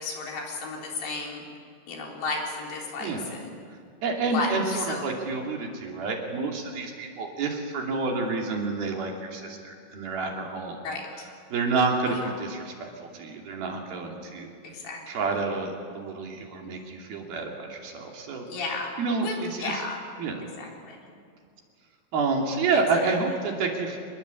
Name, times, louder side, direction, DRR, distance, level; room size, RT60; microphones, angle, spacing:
voice 1, 0.0-1.4 1.9-3.5 4.2-5.1 10.8-11.1 12.2-12.3 14.6-15.0 18.5-18.9 19.2-20.0 20.6-21.0, left 3 dB, 75° left, -1 dB, 6.1 m, -33 dB
voice 2, 4.0-10.8 11.5-12.9 13.1-14.5 15.1-18.5 19.0-19.8 20.2-20.4 22.1-24.0, right 4 dB, 60° right, 1 dB, 4.4 m, -29 dB
26.0 x 21.5 x 8.5 m, 2.3 s
omnidirectional pair, 5.1 m